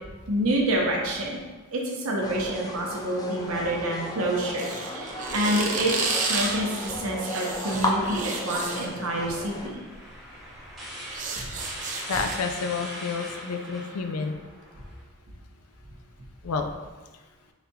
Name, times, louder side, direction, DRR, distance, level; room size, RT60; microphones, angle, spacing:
voice 1, 0.3-1.4 1.7-9.8 11.4-11.5, right 1 dB, 70° right, -1 dB, 0.9 m, -27 dB
sound 1, 2.2-9.7, left 2 dB, 15° left, 0.4 m, -34 dB
sound 2, 4.6-9.0 9.9-10.1 10.5-12.4, right 4 dB, 35° right, 0.5 m, -31 dB
sound 3, 8.5-15.0, equal, ahead, 0.8 m, -42 dB
voice 2, 12.1-14.3 16.4-16.7, left 5 dB, 80° left, 5 dB, 0.4 m, -29 dB
4.0 x 3.5 x 2.7 m, 1.3 s
head